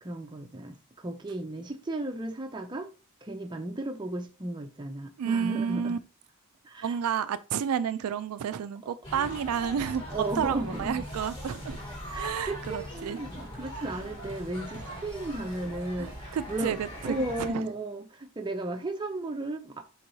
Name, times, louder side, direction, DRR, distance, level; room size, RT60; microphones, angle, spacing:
voice 1, 0.0-2.9 3.2-6.0 6.6-7.0 10.1-11.1 12.1-16.8 17.0-19.9, right 2 dB, 20° right, 0.5 m, -35 dB
voice 2, 5.2-6.0 6.8-10.0 10.4-11.8 12.2-13.2 13.7-13.9 16.0-17.2 17.5-17.6, right 7 dB, 85° right, 0.3 m, -30 dB
sound 1, 9.0-17.5, equal, 20° left, 1.3 m, -40 dB
4.5 x 3.8 x 2.7 m
head